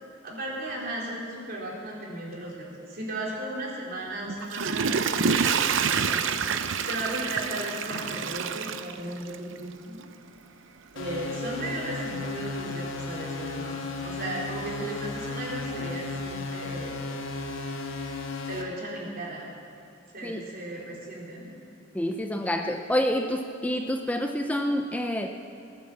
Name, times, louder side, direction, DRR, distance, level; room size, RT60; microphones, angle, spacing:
voice 1, 0.2-4.9 5.2-5.6 5.8-10.0 10.9-17.0 18.5-19.5 20.1-21.6, right 1 dB, 50° right, -4 dB, 4.0 m, -36 dB
Water / Toilet flush, 4.3-9.6 10.0-10.1, right 6 dB, 75° right, 0.7 m, -27 dB
sound 1, 11.0-18.6, left 3 dB, 90° left, 1.5 m, -34 dB
voice 2, 21.9-25.3, equal, 10° left, 4 dB, 0.5 m, -28 dB
19.5 x 9.3 x 7.4 m, 2.6 s
head